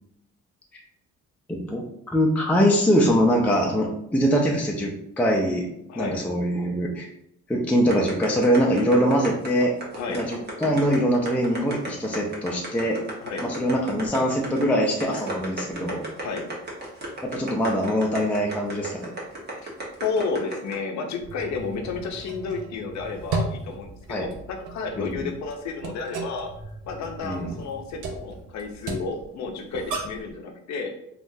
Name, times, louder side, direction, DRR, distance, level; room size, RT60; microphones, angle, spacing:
voice 1, 1.5-5.7 5.9-7.1 7.5-9.7 10.1-13.0 13.4-16.0 17.2-19.1 24.1-24.3 25.0-25.3 27.2-27.5, equal, 5° left, -1 dB, 0.4 m, -23 dB
sound 1, 7.9-20.7, right 2 dB, 35° right, 1.1 m, -34 dB
voice 2, 20.0-26.5 26.9-30.9, left 4 dB, 65° left, 3 dB, 0.6 m, -31 dB
sound 2, 21.2-30.3, right 3 dB, 80° right, 0.6 m, -35 dB
3.5 x 2.4 x 2.6 m, 0.77 s
cardioid pair, 90°, 30 cm